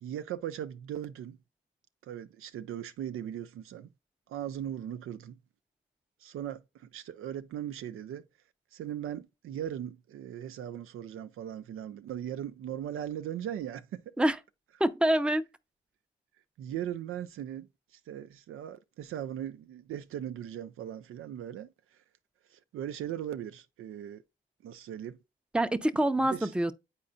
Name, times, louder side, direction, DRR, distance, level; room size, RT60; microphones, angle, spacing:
voice 1, 0.0-1.4 2.0-3.9 4.3-5.4 6.2-8.2 8.7-14.1 16.6-17.7 17.9-22.0 22.5-24.2 24.6-25.2 26.2-26.5, right 10 dB, 85° right, 0.4 m, -39 dB
voice 2, 14.8-15.4 25.5-26.7, right 1 dB, 5° right, 0.6 m, -26 dB
8.8 x 4.3 x 2.5 m
supercardioid pair, 50°, 21 cm